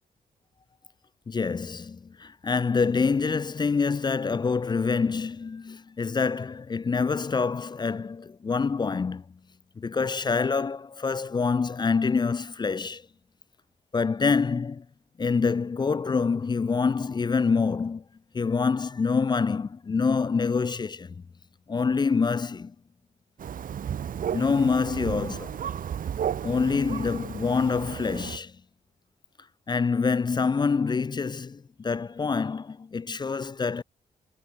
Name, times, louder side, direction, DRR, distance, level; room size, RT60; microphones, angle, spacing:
voice 1, 1.3-9.2 9.8-13.0 13.9-14.8 15.2-18.0 18.3-21.2 21.7-22.7 24.3-25.6 26.4-28.5 29.7-33.8, left 5 dB, 30° left, 0.4 m, -26 dB
Thunder, 23.4-28.4, right 9 dB, 60° right, 0.8 m, -33 dB
cardioid pair, 80°, 15 cm